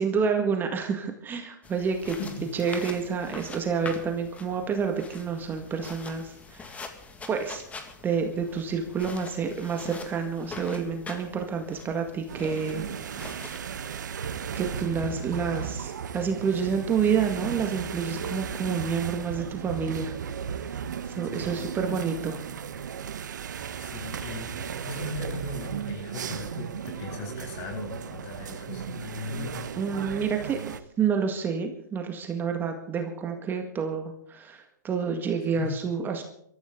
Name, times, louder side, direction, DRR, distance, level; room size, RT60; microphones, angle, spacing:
voice 1, 0.0-2.2 2.5-6.8 7.3-7.6 8.0-12.9 13.8-14.0 14.5-20.1 20.5-20.8 21.1-22.4 29.8-30.6 31.0-36.2, right 6 dB, 20° right, 4 dB, 1.9 m, -29 dB
sound 1, 1.6-13.6, left 4 dB, 15° left, 2.0 m, -44 dB
sound 2, 12.3-30.8, right 7 dB, 75° right, 1.2 m, -35 dB
voice 2, 21.3-21.7 23.8-29.7 35.6-35.7, left 2 dB, 45° left, 1 dB, 7.5 m, -38 dB
22.5 x 14.0 x 3.9 m, 0.71 s
hypercardioid pair, 125°, 10 cm